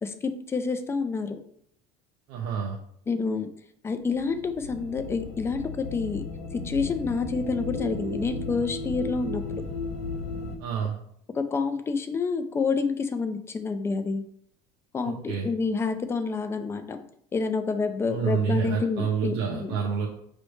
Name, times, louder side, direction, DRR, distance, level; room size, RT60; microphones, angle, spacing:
voice 1, 0.0-1.4 3.1-3.5 3.8-6.2 6.5-9.6 11.3-14.2 14.9-17.0 17.3-19.8, left 4 dB, 20° left, 8 dB, 0.5 m, -28 dB
voice 2, 2.3-2.8 10.6-11.0 15.0-15.5 18.1-20.1, right 7 dB, 75° right, -1 dB, 0.8 m, -28 dB
sound 1, 4.1-10.6, left 3 dB, 60° left, 0.9 m, -35 dB
5.2 x 3.2 x 3.2 m, 0.70 s
supercardioid pair, 130°, 13 cm